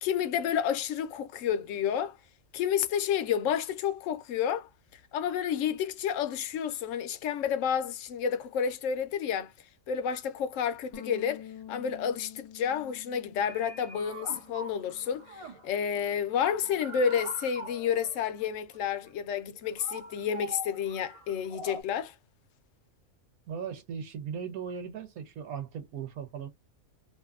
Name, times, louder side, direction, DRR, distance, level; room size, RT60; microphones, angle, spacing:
voice 1, 0.0-2.2 2.5-4.7 5.1-9.5 9.9-22.1, left 8 dB, 70° left, 0.9 m, -30 dB
sound 1, 10.9-15.5 15.8-17.2, left 9 dB, 45° left, 0.5 m, -49 dB
sound 2, 13.4-21.8, right 1 dB, 35° right, 0.5 m, -44 dB
voice 2, 23.5-26.5, right 7 dB, 90° right, 1.2 m, -38 dB
2.7 x 2.5 x 2.3 m
omnidirectional pair, 1.4 m